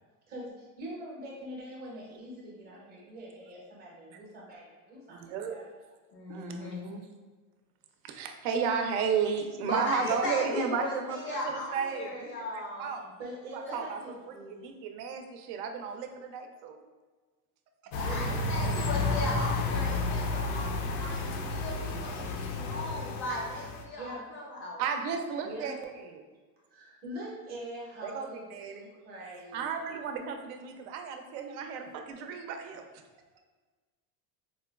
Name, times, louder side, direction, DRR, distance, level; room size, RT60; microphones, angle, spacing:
voice 1, 0.3-5.2 5.5-5.7 13.0-14.7 18.0-19.3 24.0-24.3 25.4-25.8 26.7-30.0, right 1 dB, 25° right, -3 dB, 0.6 m, -43 dB
voice 2, 5.1-5.6 6.3-7.0 8.0-13.0 13.5-16.8 24.8-26.2 28.0-28.9 29.5-32.8, right 6 dB, 85° right, 4 dB, 0.5 m, -34 dB
voice 3, 6.1-6.9 9.6-12.9 13.6-13.8 17.9-24.8, left 1 dB, 30° left, -3 dB, 0.4 m, -37 dB
sound 1, 17.9-23.8, left 3 dB, 85° left, 0.5 m, -31 dB
4.3 x 2.2 x 2.2 m, 1.4 s
cardioid pair, 170°, 42 cm